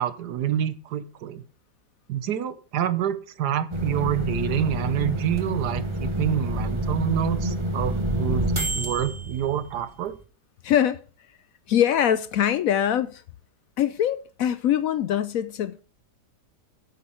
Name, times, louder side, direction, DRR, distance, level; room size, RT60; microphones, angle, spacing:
voice 1, 0.0-1.4 2.1-10.2, right 10 dB, 75° right, 1.4 m, -27 dB
sound 1, 3.7-10.1, right 1 dB, 20° right, 1.1 m, -28 dB
voice 2, 10.6-11.0 11.7-13.2 13.8-15.8, left 10 dB, 70° left, 0.9 m, -23 dB
8.4 x 8.4 x 4.4 m
omnidirectional pair, 1.8 m